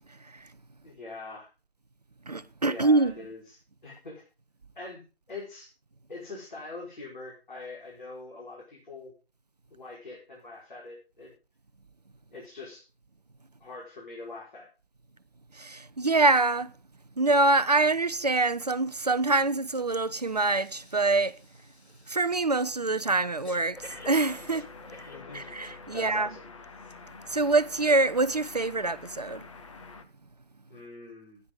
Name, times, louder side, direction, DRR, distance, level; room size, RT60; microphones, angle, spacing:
voice 1, 0.8-1.5 2.7-4.2 4.7-5.0 5.3-5.7 6.1-9.1 9.7-11.3 12.3-12.9 13.6-14.7 25.1-25.5 25.9-26.4 30.7-31.4, left 3 dB, 50° left, 5.1 m, -43 dB
voice 2, 2.3-3.1 15.6-16.7 17.2-21.4 22.1-23.8 24.1-24.7 25.3-26.3 27.3-29.5, right 3 dB, 40° right, 0.6 m, -25 dB
Breathing, 19.3-19.5 19.8-26.2 26.8-26.9, left 1 dB, 80° left, 2.7 m, -51 dB
sound 1, 23.7-30.0, left 4 dB, 30° left, 1.1 m, -47 dB
16.5 x 9.6 x 3.9 m
figure-of-eight pair, 150°, 32 cm